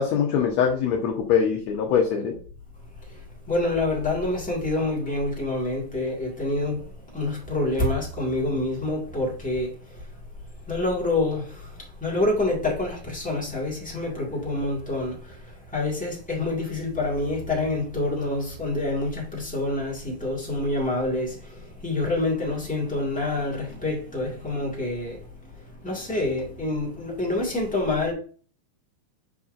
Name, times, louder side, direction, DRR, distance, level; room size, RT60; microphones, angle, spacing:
voice 1, 0.0-2.4, left 7 dB, 70° left, 1.8 m, -23 dB
voice 2, 3.1-10.0 10.7-25.5 25.8-28.1, left 2 dB, 5° left, 0.7 m, -27 dB
6.9 x 5.5 x 2.6 m
omnidirectional pair, 3.7 m